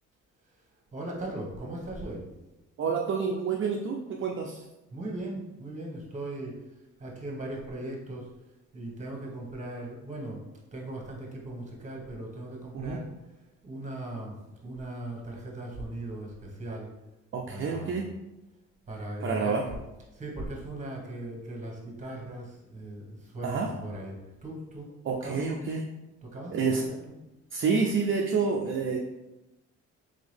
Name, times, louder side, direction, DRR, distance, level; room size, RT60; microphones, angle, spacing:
voice 1, 0.9-2.2 4.9-6.6 7.0-8.3 8.7-10.4 10.7-13.1 13.6-16.9 17.5-18.0 18.9-19.7 20.1-24.9 25.2-25.4 26.2-27.1, right 1 dB, 25° right, -1 dB, 1.5 m, -38 dB
voice 2, 2.8-4.6 12.7-13.0 17.3-18.1 19.2-19.6 23.4-23.7 25.0-25.8 26.5-26.8 27.5-29.0, right 5 dB, 45° right, 0 dB, 0.5 m, -28 dB
3.7 x 3.5 x 3.5 m, 1.0 s
cardioid pair, 90°, 30 cm